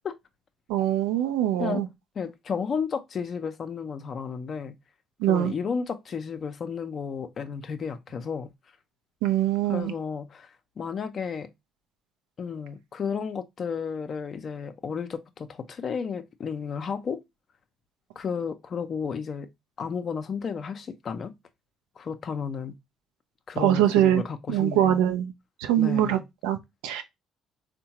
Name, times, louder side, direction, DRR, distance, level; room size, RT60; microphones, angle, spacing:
voice 1, 0.7-1.9 5.2-5.5 9.2-9.9 23.6-24.2 24.5-25.3 25.6-26.6 26.8-27.0, right 11 dB, 75° right, 0.4 m, -23 dB
voice 2, 2.2-4.8 5.3-8.5 9.7-11.5 12.4-17.2 18.2-19.5 19.8-21.3 22.0-22.7 23.5-25.0 25.8-26.2, left 6 dB, 50° left, 0.5 m, -33 dB
3.6 x 2.2 x 2.8 m
hypercardioid pair, 55°, 0 cm